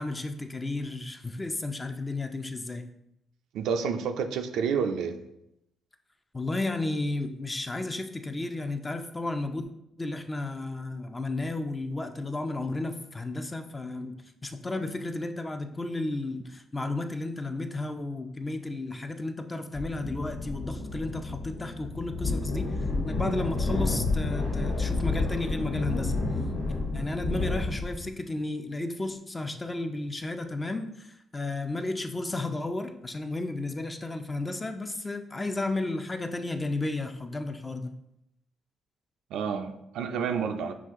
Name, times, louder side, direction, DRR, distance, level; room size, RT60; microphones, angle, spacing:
voice 1, 0.0-2.8 6.3-9.7 10.0-22.8 23.0-26.1 26.9-37.9, left 2 dB, 20° left, 7 dB, 0.5 m, -33 dB
voice 2, 3.5-5.2 39.3-40.7, right 6 dB, 80° right, 7 dB, 0.4 m, -29 dB
sound 1, 19.7-28.1, left 3 dB, 85° left, 1.6 m, -30 dB
6.0 x 2.4 x 3.6 m, 0.81 s
cardioid pair, 90°, 0 cm